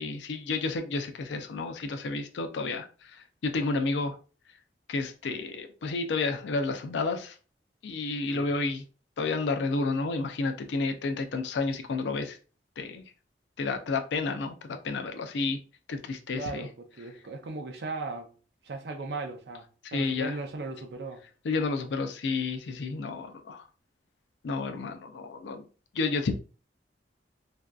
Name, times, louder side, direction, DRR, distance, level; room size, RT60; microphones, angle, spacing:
voice 1, 0.0-2.8 3.1-4.2 4.9-7.3 7.8-8.8 9.2-12.4 12.8-13.1 13.6-15.6 15.9-16.7 19.9-20.4 21.4-23.6 24.4-25.6 25.9-26.3, left 3 dB, 85° left, 0.4 m, -31 dB
voice 2, 16.3-18.3 18.6-21.2, right 3 dB, 70° right, 0.5 m, -37 dB
2.5 x 2.3 x 2.2 m
head